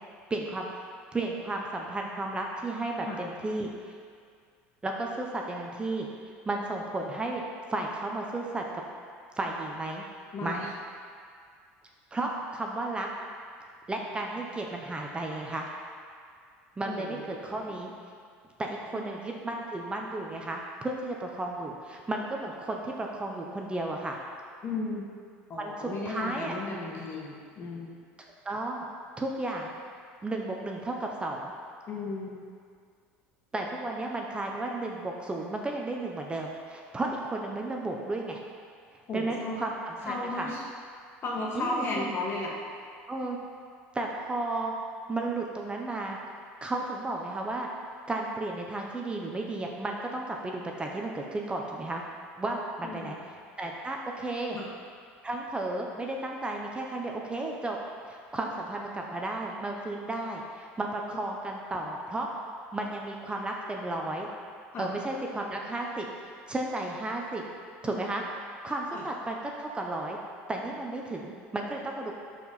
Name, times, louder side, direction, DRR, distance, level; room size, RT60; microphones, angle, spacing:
voice 1, 0.3-0.7 1.1-3.7 4.8-6.1 6.4-7.4 7.7-8.8 9.4-10.0 10.4-10.7 12.1-13.1 13.9-15.7 16.8-17.9 18.6-24.2 25.6-26.5 28.4-28.8 29.2-29.8 30.2-31.5 33.5-38.4 39.1-40.5 41.5-42.1 43.1-43.4 43.9-44.7 45.1-46.2 46.6-47.7 48.1-52.0 52.4-54.6 55.2-57.8 58.1-62.3 62.7-64.3 64.8-66.1 66.5-67.4 67.8-68.2 68.6-70.2 70.5-72.1, right 2 dB, 15° right, 0 dB, 0.9 m, -33 dB
voice 2, 10.3-10.7 16.9-17.2 24.6-25.0 25.5-28.0 31.9-32.4 39.1-39.6 40.1-40.6 41.2-42.6 52.8-53.1 54.5-54.7 64.7-64.9 68.9-69.0, left 2 dB, 45° left, -2 dB, 2.1 m, -34 dB
12.0 x 4.8 x 4.2 m, 2.2 s
supercardioid pair, 95°, 6 cm